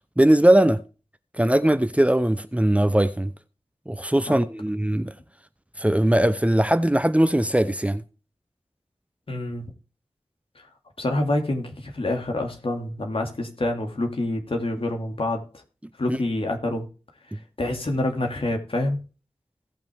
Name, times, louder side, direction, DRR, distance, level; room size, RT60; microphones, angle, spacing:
voice 1, 0.2-0.8 1.4-3.3 3.9-5.1 5.8-8.0 16.1-16.2, right 1 dB, 10° right, 0.8 m, -20 dB
voice 2, 9.3-9.7 10.6-10.7 11.0-15.5 16.0-16.9 17.3-19.0, left 1 dB, 65° left, 2.4 m, -27 dB
17.5 x 6.0 x 3.5 m
wide cardioid pair, 70°, 10 cm